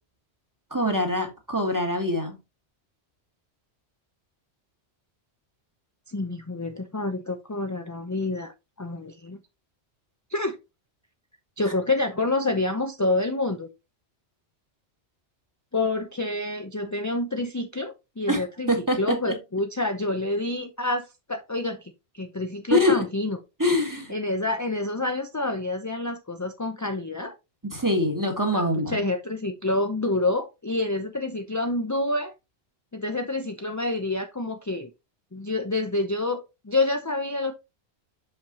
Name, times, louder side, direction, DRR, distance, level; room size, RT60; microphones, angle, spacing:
voice 1, 0.7-2.4 18.3-19.3 22.7-23.0 23.6-24.1 27.6-29.0, left 1 dB, 15° right, 1.6 m, -24 dB
voice 2, 6.1-8.5 8.8-9.4 10.3-10.6 11.6-13.7 15.7-23.4 24.1-27.3 28.5-32.3 32.9-34.9 35.3-37.5, left 2 dB, 20° left, 0.6 m, -28 dB
6.5 x 5.7 x 2.8 m
omnidirectional pair, 1.1 m